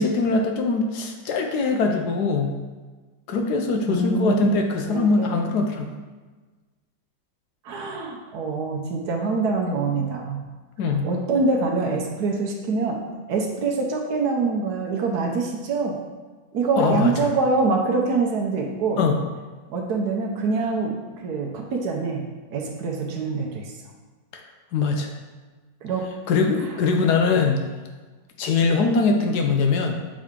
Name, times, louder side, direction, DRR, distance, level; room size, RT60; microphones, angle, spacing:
voice 1, 0.0-2.6 3.3-5.9 10.8-11.0 16.8-17.3 19.0-19.1 24.3-24.4 24.7-25.1 26.3-27.6 28.4-30.0, left 4 dB, 70° left, 3 dB, 1.1 m, -22 dB
voice 2, 3.9-5.4 7.6-10.4 10.9-13.0 13.3-16.0 16.5-19.0 19.7-20.9 21.2-22.2 22.5-23.7 25.8-26.1 26.6-26.7, right 3 dB, 65° right, 1 dB, 1.2 m, -25 dB
7.4 x 3.7 x 3.6 m, 1.3 s
omnidirectional pair, 1.9 m